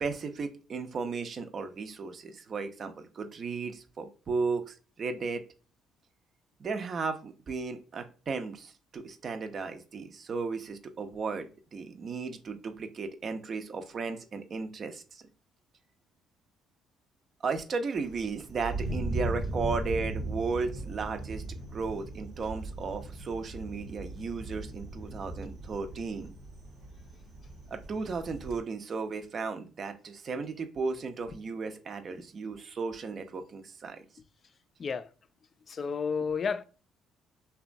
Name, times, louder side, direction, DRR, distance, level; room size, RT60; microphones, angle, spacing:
voice 1, 0.0-5.4 6.6-15.3 17.4-21.4 21.7-26.3 27.7-34.0, right 4 dB, 50° right, 0.5 m, -35 dB
Thunder, 18.0-28.6, right 2 dB, 85° right, 0.9 m, -38 dB
voice 2, 34.8-35.1 35.7-36.6, left 5 dB, 45° left, 0.3 m, -32 dB
2.8 x 2.2 x 2.5 m
supercardioid pair, 70°, 0 cm